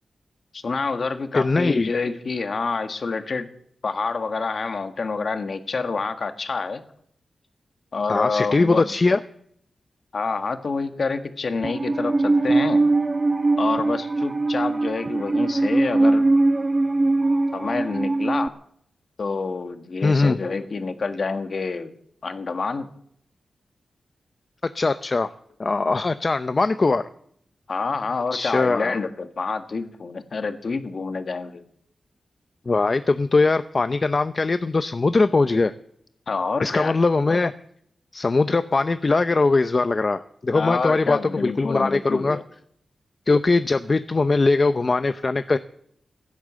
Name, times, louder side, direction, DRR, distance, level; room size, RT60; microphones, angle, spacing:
voice 1, 0.5-3.5 3.8-6.8 7.9-8.8 10.1-12.8 13.6-16.3 17.5-18.5 19.2-21.9 22.2-22.9 27.7-31.6 36.3-36.9 40.5-42.4, left 4 dB, 50° left, 8 dB, 1.6 m, -27 dB
voice 2, 1.3-1.9 8.1-9.2 20.0-20.4 24.7-25.3 25.6-27.0 28.3-29.0 32.7-35.7 36.6-37.5 38.1-42.4 43.3-45.6, left 3 dB, 35° left, 11 dB, 0.6 m, -21 dB
Musical instrument, 11.6-18.5, right 2 dB, 25° right, 0.5 m, -21 dB
16.5 x 12.0 x 7.6 m, 0.68 s
wide cardioid pair, 125°, 0 cm